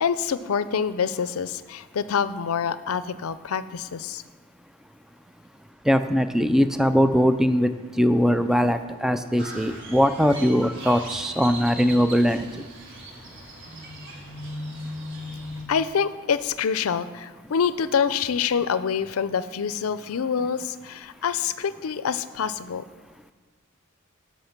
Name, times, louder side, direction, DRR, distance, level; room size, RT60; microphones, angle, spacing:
voice 1, 0.0-4.2 15.7-22.8, left 7 dB, 80° left, 14 dB, 0.5 m, -26 dB
voice 2, 5.9-7.7 8.0-12.5, equal, ahead, 10 dB, 0.4 m, -21 dB
Crow, 9.4-15.6, right 1 dB, 60° right, 1.7 m, -38 dB
10.5 x 6.4 x 5.9 m, 1.4 s
head